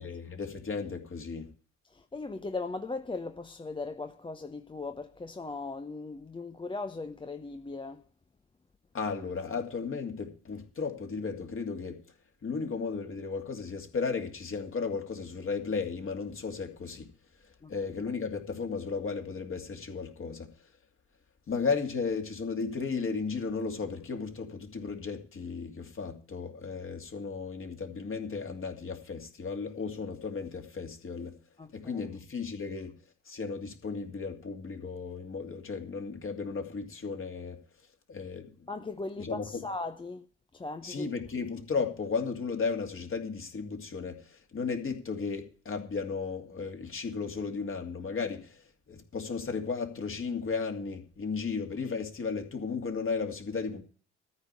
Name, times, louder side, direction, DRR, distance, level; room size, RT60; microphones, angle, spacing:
voice 1, 0.0-1.5 8.9-12.0 12.4-17.1 17.7-20.5 21.5-31.4 31.7-33.0 33.2-37.6 38.1-38.7 39.2-39.6 40.8-53.8, left 5 dB, 40° left, 2.6 m, -35 dB
voice 2, 1.8-8.0 17.6-17.8 31.6-32.1 38.7-40.3 40.5-41.1, left 3 dB, 15° left, 0.8 m, -38 dB
13.5 x 5.3 x 8.4 m
figure-of-eight pair, 50°, 34 cm